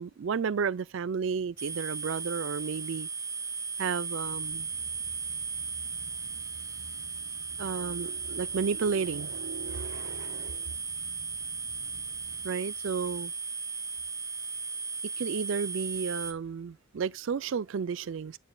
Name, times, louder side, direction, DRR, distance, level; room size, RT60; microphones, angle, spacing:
voice 1, 0.0-3.1 3.8-4.7 7.6-10.8 12.4-13.3 15.2-18.4, right 6 dB, 65° right, 0.4 m, -32 dB
sound 1, 1.6-16.3, right 5 dB, 15° right, 0.7 m, -36 dB
sound 2, 4.2-12.5, right 2 dB, 85° right, 1.0 m, -53 dB
9.3 x 5.4 x 2.2 m
head